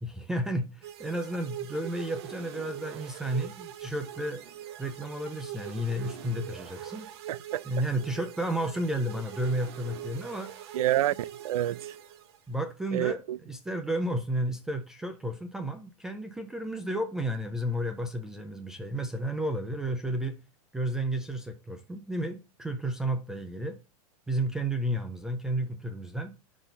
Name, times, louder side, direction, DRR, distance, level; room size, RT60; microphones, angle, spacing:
voice 1, 0.0-4.4 4.8-7.1 7.6-10.5 12.5-20.4 20.7-23.8 24.3-26.3, right 1 dB, 5° right, 0.3 m, -32 dB
sound 1, 0.8-12.7, right 11 dB, 45° right, 1.0 m, -43 dB
voice 2, 7.3-7.6 10.7-12.0 12.9-13.4, right 13 dB, 70° right, 0.4 m, -28 dB
10.5 x 4.1 x 3.9 m
supercardioid pair, 175°, 19 cm